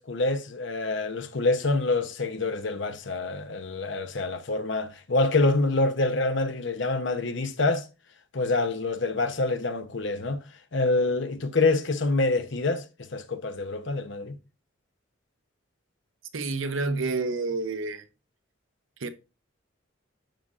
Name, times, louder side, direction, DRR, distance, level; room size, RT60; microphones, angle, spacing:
voice 1, 0.0-7.9 8.3-10.4 10.7-12.8 13.1-14.3, left 3 dB, 60° left, 0.8 m, -26 dB
voice 2, 16.3-18.1 19.0-19.1, right 3 dB, 75° right, 0.8 m, -29 dB
11.5 x 5.0 x 2.5 m
head